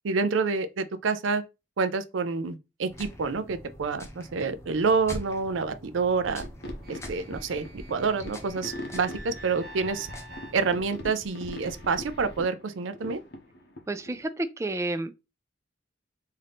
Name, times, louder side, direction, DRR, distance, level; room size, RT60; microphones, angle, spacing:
voice 1, 0.0-1.4 1.8-6.4 6.9-10.1 10.5-13.2, right 4 dB, 85° right, 0.5 m, -28 dB
sound 1, 2.9-11.0, equal, 15° left, 0.6 m, -45 dB
sound 2, 6.2-12.4, equal, 50° right, 0.7 m, -45 dB
sound 3, 6.4-14.3, left 1 dB, 55° left, 0.8 m, -43 dB
voice 2, 13.9-15.2, right 2 dB, 15° right, 0.3 m, -31 dB
3.7 x 2.7 x 3.4 m
head